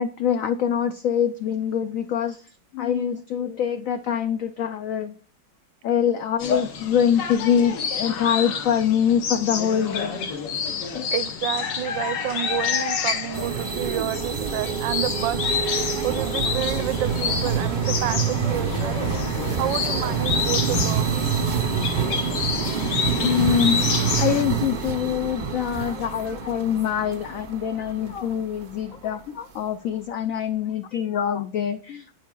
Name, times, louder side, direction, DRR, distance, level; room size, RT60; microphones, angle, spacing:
voice 1, 0.0-2.4 2.7-5.2 5.8-10.4 10.9-11.1 23.2-23.8 24.2-32.2, left 8 dB, 90° left, 0.7 m, -24 dB
sound 1, 6.4-24.4, left 6 dB, 70° left, 1.6 m, -29 dB
voice 2, 11.1-15.6 16.0-19.2 19.5-21.2, right 13 dB, 90° right, 1.3 m, -30 dB
sound 2, 13.3-28.6, right 6 dB, 75° right, 0.4 m, -27 dB
11.0 x 4.9 x 2.3 m
omnidirectional pair, 2.0 m